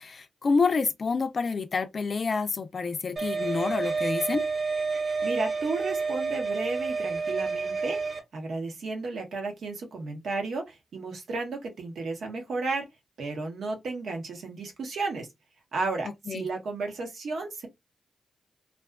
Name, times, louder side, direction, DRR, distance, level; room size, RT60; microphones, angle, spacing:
voice 1, 0.0-4.4 16.3-16.5, left 4 dB, 60° left, 0.4 m, -28 dB
sound 1, 3.2-8.2, right 4 dB, 50° right, 1.1 m, -29 dB
voice 2, 5.2-8.0 8.3-12.9 13.2-15.3 15.7-17.7, right 3 dB, 75° right, 0.9 m, -33 dB
2.5 x 2.3 x 2.3 m
supercardioid pair, 45°, 0 cm